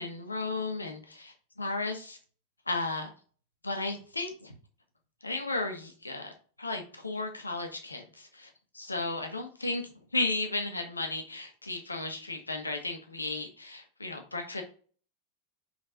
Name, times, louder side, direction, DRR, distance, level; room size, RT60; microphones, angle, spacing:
voice 1, 0.0-2.2 2.7-3.1 3.6-4.5 5.2-6.3 6.6-9.8 10.1-14.6, left 2 dB, 80° left, 4 dB, 1.2 m, -34 dB
5.5 x 3.9 x 5.1 m, 0.42 s
figure-of-eight pair, 90°, 0 cm